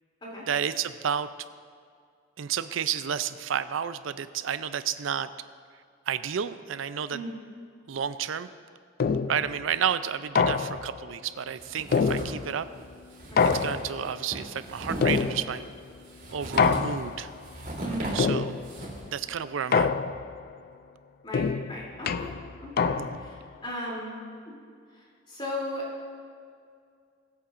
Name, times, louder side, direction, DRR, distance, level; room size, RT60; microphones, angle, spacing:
voice 1, 0.5-1.3 2.4-5.3 6.1-7.2 7.9-8.5 9.3-12.7 13.5-15.7 16.3-17.3 18.1-18.6 19.1-19.9 23.0-23.2, right 8 dB, 90° right, 13 dB, 0.5 m, -31 dB
sound 1, 9.0-9.5 10.4-11.0 11.9-12.7 13.4-14.2 15.0-15.7 16.6-17.3 18.2-18.8 19.7-20.4 21.3-23.4, left 5 dB, 50° left, 0.4 m, -26 dB
sound 2, 11.6-12.5 12.8-12.9 13.1-19.2, right 1 dB, 50° right, 3.2 m, -37 dB
voice 2, 17.8-18.2 21.2-22.9 23.2-24.2 25.3-25.9, left 1 dB, 25° left, -5 dB, 3.1 m, -36 dB
23.5 x 8.4 x 2.6 m, 2.2 s
head